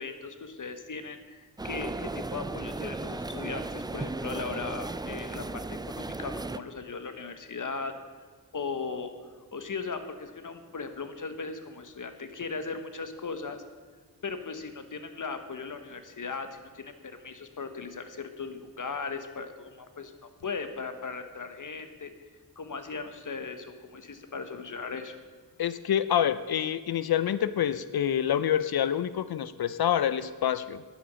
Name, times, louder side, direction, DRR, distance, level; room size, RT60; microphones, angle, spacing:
voice 1, 0.0-7.9 8.5-9.1 9.5-13.6 14.2-22.1 22.6-25.2, left 4 dB, 50° left, 8 dB, 1.1 m, -38 dB
sound 1, 1.6-6.6, right 2 dB, 10° right, 0.3 m, -35 dB
voice 2, 25.6-30.8, left 10 dB, 70° left, 14 dB, 0.5 m, -27 dB
11.0 x 9.2 x 6.2 m, 1.5 s
wide cardioid pair, 75°, 39 cm